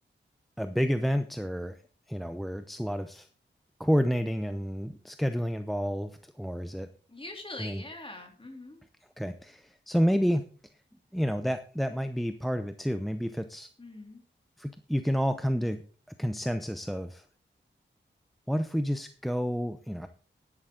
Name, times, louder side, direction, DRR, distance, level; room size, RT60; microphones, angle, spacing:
voice 1, 0.6-1.8 2.1-3.3 3.8-6.9 7.6-7.8 9.2-10.4 11.1-13.7 14.6-15.8 16.2-17.2 18.5-20.1, equal, ahead, 9 dB, 0.7 m, -29 dB
voice 2, 7.1-8.8 13.8-14.2, left 2 dB, 25° left, 2 dB, 3.4 m, -43 dB
11.5 x 11.0 x 3.9 m, 0.40 s
wide cardioid pair, 95°, 20 cm